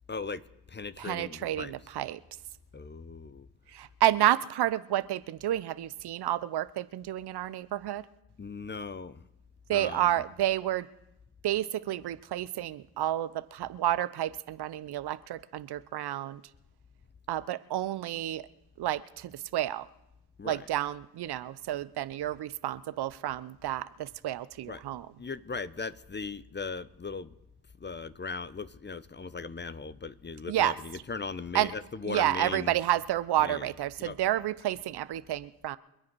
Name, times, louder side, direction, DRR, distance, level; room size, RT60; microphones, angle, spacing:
voice 1, 0.1-1.9 2.7-3.5 8.4-9.2 9.7-10.2 20.4-20.7 24.6-24.9 25.2-27.3 27.8-32.8 33.4-33.7 34.0-34.2, left 4 dB, 25° left, 0.9 m, -38 dB
voice 2, 1.0-2.2 3.7-8.0 9.7-10.9 11.4-16.4 17.3-18.4 18.8-19.9 20.4-25.1 30.5-30.7 31.5-31.7 32.0-35.8, right 13 dB, 55° right, 0.8 m, -30 dB
26.5 x 9.6 x 4.7 m
hypercardioid pair, 40°, 46 cm